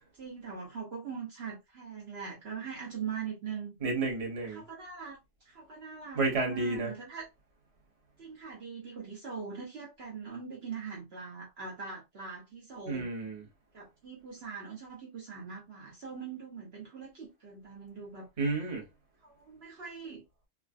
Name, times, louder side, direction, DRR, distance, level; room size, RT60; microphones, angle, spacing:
voice 1, 0.1-3.8 4.4-7.3 8.2-13.1 13.7-18.3 19.2-20.2, right 6 dB, 55° right, 1.1 m, -42 dB
voice 2, 3.8-4.6 6.1-6.9 12.9-13.4 18.4-18.8, right 3 dB, 30° right, 1.0 m, -31 dB
3.6 x 2.4 x 2.2 m
omnidirectional pair, 1.4 m